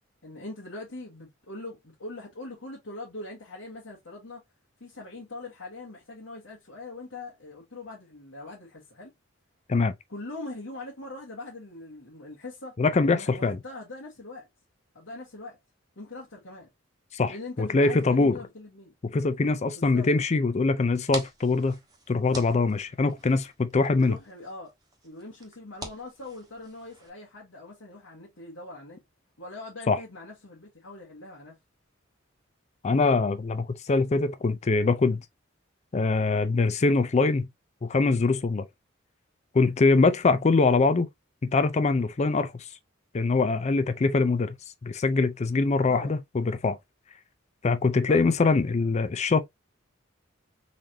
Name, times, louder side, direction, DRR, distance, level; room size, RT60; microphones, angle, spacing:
voice 1, 0.2-4.4 4.8-9.1 10.1-12.8 13.1-14.5 14.9-15.6 16.0-16.7 17.3-18.9 19.7-20.1 24.0-24.7 25.0-29.0 29.4-31.6 45.9-46.1 48.1-48.2, left 2 dB, 85° left, 1.4 m, -42 dB
voice 2, 12.8-13.6 17.1-18.4 19.0-21.8 22.1-24.2 29.9-30.0 32.8-35.2 35.9-37.5 37.8-38.7 39.5-41.1 41.4-42.6 43.1-44.5 44.8-46.8 47.6-49.4, left 3 dB, 35° left, 0.4 m, -23 dB
sound 1, 20.8-27.1, right 2 dB, 20° right, 1.1 m, -45 dB
4.0 x 3.3 x 2.7 m
head